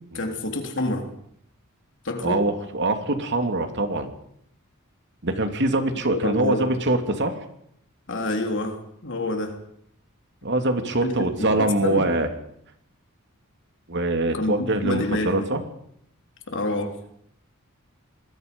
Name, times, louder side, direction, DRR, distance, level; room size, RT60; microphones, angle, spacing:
voice 1, 0.1-1.1 2.0-2.5 6.1-6.7 8.1-9.6 11.0-11.3 11.6-12.0 14.3-14.5 14.8-15.5 16.5-17.0, left 2 dB, 60° left, 4 dB, 3.6 m, -27 dB
voice 2, 2.2-4.1 5.2-7.5 10.4-12.3 13.9-15.6, right 2 dB, 55° right, 6 dB, 2.7 m, -24 dB
27.0 x 20.5 x 5.4 m, 0.71 s
head